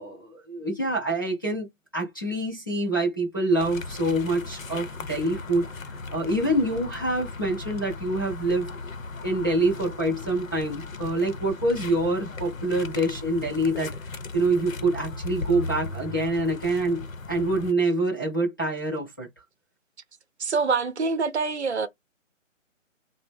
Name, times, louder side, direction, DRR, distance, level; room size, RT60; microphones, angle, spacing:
voice 1, 0.0-1.7 1.9-8.7 9.2-13.9 14.3-19.3, right 1 dB, 15° left, 0.5 m, -26 dB
sound 1, 3.6-17.7, left 3 dB, 90° left, 0.7 m, -37 dB
voice 2, 20.4-21.9, right 4 dB, 55° right, 0.7 m, -25 dB
3.2 x 2.0 x 3.4 m
figure-of-eight pair, 155°, 39 cm